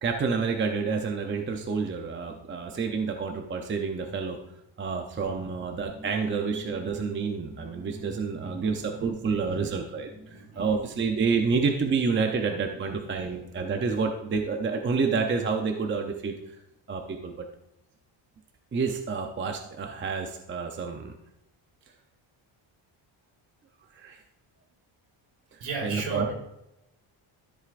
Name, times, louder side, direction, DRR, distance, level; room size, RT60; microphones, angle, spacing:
voice 1, 0.0-4.4 4.8-16.3 16.9-17.5 18.7-21.1 23.9-24.2 25.5-26.2, right 5 dB, 25° right, 4 dB, 0.6 m, -29 dB
voice 2, 5.1-5.5 7.9-9.8 10.3-10.7 12.4-12.5 12.8-13.4 13.9-14.0 25.6-26.3, right 4 dB, 65° right, 0 dB, 3.7 m, -37 dB
sound 1, 5.8-10.5, equal, 10° left, 0.8 m, -46 dB
13.5 x 8.0 x 2.5 m, 0.88 s
cardioid pair, 175°, 49 cm